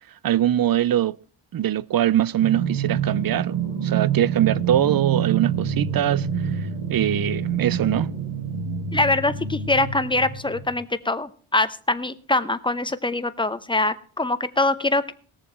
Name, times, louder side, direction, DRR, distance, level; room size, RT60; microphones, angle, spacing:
voice 1, 0.2-1.2 1.5-3.6 3.8-6.3 6.9-8.1, right 11 dB, 45° right, 0.5 m, -22 dB
sound 1, 2.4-10.7, right 7 dB, 85° right, 2.1 m, -27 dB
voice 2, 8.9-15.1, left 2 dB, 10° left, 0.7 m, -23 dB
18.5 x 7.0 x 4.5 m
cardioid pair, 80°, 50 cm